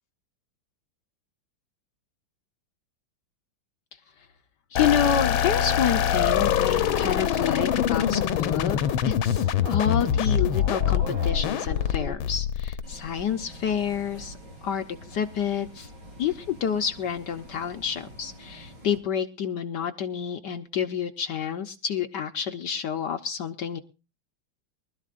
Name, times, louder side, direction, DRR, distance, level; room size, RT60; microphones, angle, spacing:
voice 1, 4.7-8.8 9.0-14.4 14.6-15.9 16.2-23.8, left 8 dB, 65° left, 6 dB, 1.4 m, -29 dB
sound 1, 4.8-13.2, left 9 dB, 80° left, 1.6 m, -24 dB
sound 2, 6.1-12.1, right 1 dB, 85° right, 8.4 m, -38 dB
Bus, 12.8-19.0, equal, 55° right, 5.3 m, -46 dB
24.0 x 13.0 x 2.5 m, 0.31 s
omnidirectional pair, 2.2 m